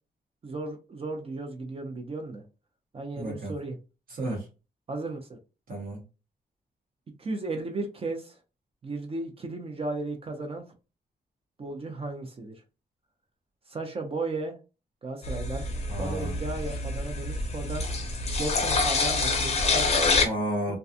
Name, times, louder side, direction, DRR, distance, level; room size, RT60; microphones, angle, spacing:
voice 1, 0.4-2.4 2.9-3.8 4.9-5.4 7.2-8.4 8.8-10.6 11.6-12.6 13.7-14.5 15.0-15.7 16.0-17.9 18.4-20.1 20.7-20.8, right 2 dB, 35° right, 0.5 m, -35 dB
voice 2, 3.2-3.5 4.1-4.5 5.7-6.0 15.9-16.3 20.2-20.8, right 1 dB, 60° right, 0.9 m, -32 dB
sound 1, 15.2-20.3, left 3 dB, 40° left, 0.5 m, -27 dB
2.4 x 2.2 x 2.6 m
wide cardioid pair, 145°, 17 cm